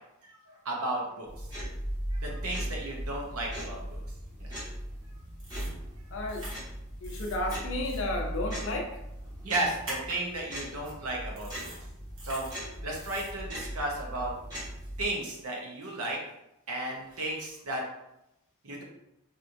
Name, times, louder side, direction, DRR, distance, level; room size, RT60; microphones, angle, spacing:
voice 1, 0.2-1.5 2.1-4.0 4.4-4.5 9.4-11.7 12.2-12.5 12.8-14.3 15.0-16.2 16.7-17.8 18.6-18.8, right 1 dB, 80° right, -1 dB, 0.7 m, -34 dB
sound 1, 1.3-15.1, equal, 20° right, 1.0 m, -38 dB
sound 2, 5.4-5.7 6.3-6.6 7.0-7.3 7.8-8.0 9.8-10.2 10.8-10.9 11.4-11.8 12.2-12.6 12.9-13.3, right 1 dB, 65° right, 1.0 m, -43 dB
voice 2, 6.1-6.5 7.0-9.0, left 1 dB, 60° left, 1 dB, 0.5 m, -33 dB
2.9 x 2.5 x 2.5 m, 0.86 s
head